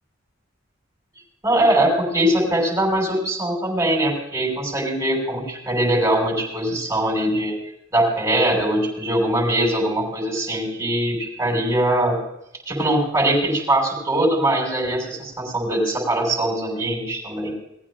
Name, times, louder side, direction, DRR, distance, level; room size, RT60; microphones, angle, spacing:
voice 1, 1.4-7.5 7.9-12.2 12.7-17.5, right 1 dB, 15° right, 0 dB, 5.9 m, -21 dB
20.5 x 15.0 x 2.5 m, 0.81 s
head